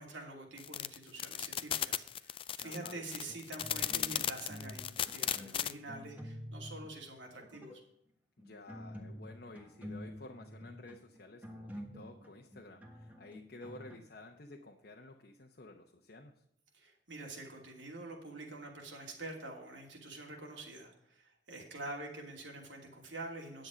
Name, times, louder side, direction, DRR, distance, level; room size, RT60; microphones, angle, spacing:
voice 1, 0.0-7.8 16.7-23.7, right 2 dB, 85° right, 0 dB, 2.7 m, -46 dB
sound 1, 0.6-5.7, left 10 dB, 30° left, 0.3 m, -35 dB
voice 2, 2.6-3.0 8.4-16.4, left 2 dB, 55° left, 1 dB, 0.9 m, -52 dB
sound 2, 3.3-4.8 5.1-6.9 7.4-7.8 8.4-14.0, equal, 10° right, 1.3 m, -48 dB
9.8 x 7.9 x 5.0 m, 0.74 s
head